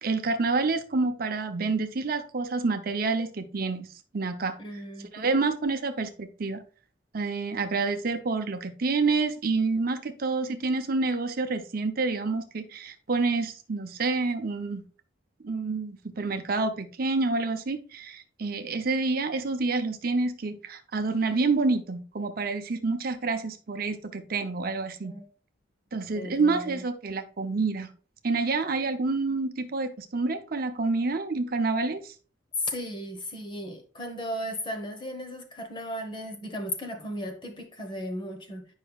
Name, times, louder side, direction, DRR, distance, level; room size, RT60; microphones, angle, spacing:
voice 1, 0.0-4.5 5.1-6.6 7.1-14.8 15.4-25.1 25.9-27.9 28.2-32.1, right 3 dB, 50° right, 7 dB, 0.7 m, -28 dB
voice 2, 4.6-5.4 25.0-25.2 26.1-26.8 32.6-38.7, equal, 25° left, 6 dB, 1.1 m, -36 dB
9.7 x 5.5 x 2.4 m, 0.39 s
head